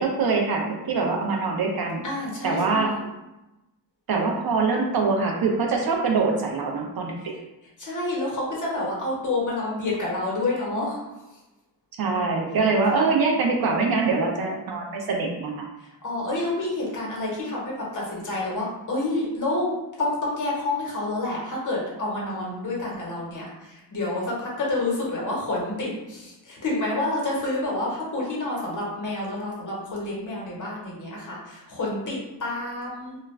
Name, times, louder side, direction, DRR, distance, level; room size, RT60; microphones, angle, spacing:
voice 1, 0.0-2.0 2.4-2.9 4.1-7.1 12.0-15.6, right 4 dB, 55° right, 0 dB, 0.5 m, -24 dB
voice 2, 2.0-3.0 7.8-11.4 12.9-13.2 15.8-19.7 20.0-33.2, left 2 dB, 45° left, -4 dB, 1.0 m, -29 dB
2.4 x 2.1 x 3.1 m, 0.99 s
cardioid pair, 110°, 44 cm